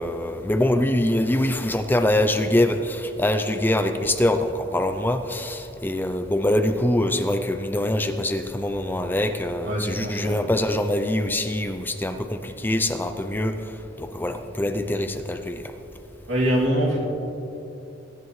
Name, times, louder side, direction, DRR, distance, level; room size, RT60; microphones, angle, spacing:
voice 1, 0.0-13.6 14.0-15.6, left 1 dB, 10° left, 8 dB, 0.5 m, -24 dB
voice 2, 9.6-10.4 16.3-17.1, equal, 80° right, -3 dB, 2.6 m, -23 dB
21.0 x 10.5 x 3.2 m, 3.0 s
head